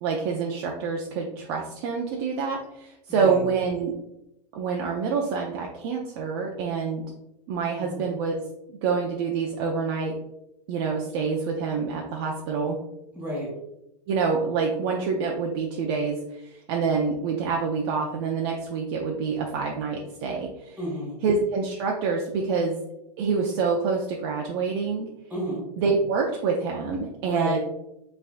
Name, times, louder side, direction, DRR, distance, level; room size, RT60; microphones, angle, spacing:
voice 1, 0.0-3.9 4.5-7.0 7.5-8.4 8.7-10.1 10.7-12.8 14.1-20.8 21.2-22.8 23.2-25.1 25.8-27.6, right 5 dB, 35° right, 0 dB, 0.5 m, -27 dB
voice 2, 3.1-3.5 7.8-8.0 13.1-13.5 20.8-21.2 25.3-25.6 27.2-27.6, equal, 5° right, -3 dB, 1.5 m, -31 dB
5.5 x 3.5 x 2.5 m, 0.86 s
supercardioid pair, 155°, 21 cm